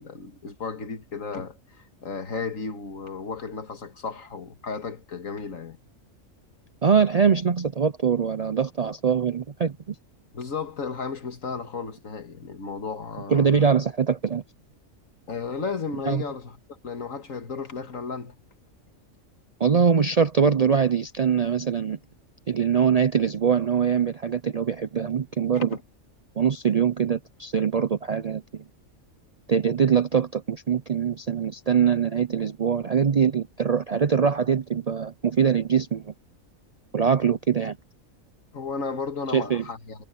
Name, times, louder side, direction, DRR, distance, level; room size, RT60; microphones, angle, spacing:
voice 1, 0.0-5.8 10.3-13.7 15.3-18.4 25.6-25.8 38.5-40.0, left 5 dB, 75° left, 2.2 m, -34 dB
voice 2, 6.8-9.8 13.3-14.4 16.1-16.2 19.6-22.0 22.5-25.7 26.4-28.6 29.5-36.1 36.9-37.8 39.3-39.6, right 7 dB, 50° right, 0.4 m, -23 dB
omnidirectional pair, 1.4 m